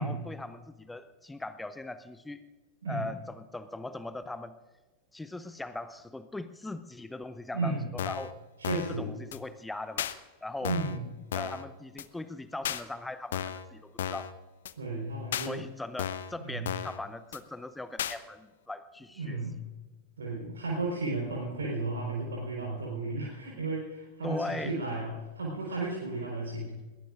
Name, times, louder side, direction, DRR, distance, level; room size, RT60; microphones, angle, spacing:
voice 1, 0.0-2.4 2.9-4.5 5.1-8.4 9.0-10.1 10.4-10.8 11.3-14.3 15.4-19.4 24.2-24.7, left 2 dB, 5° left, 13 dB, 0.6 m, -40 dB
voice 2, 7.5-7.9 8.6-9.2 10.6-11.0 14.8-15.7 16.4-16.7 19.2-19.6 20.2-26.7, right 2 dB, 70° right, -3 dB, 4.4 m, -34 dB
sound 1, 8.0-8.3 8.6-9.0 9.3-9.4 10.0-10.1 10.6-11.0 11.3-11.6 12.0-12.1 12.6-12.8 13.3-13.6 14.0-14.3 14.6-14.7 15.3-15.5 16.0-16.3 16.6-17.0 17.3-17.4 18.0-18.2, left 10 dB, 60° left, 0.7 m, -34 dB
21.5 x 19.5 x 2.5 m, 1.3 s
figure-of-eight pair, 90°, 0 cm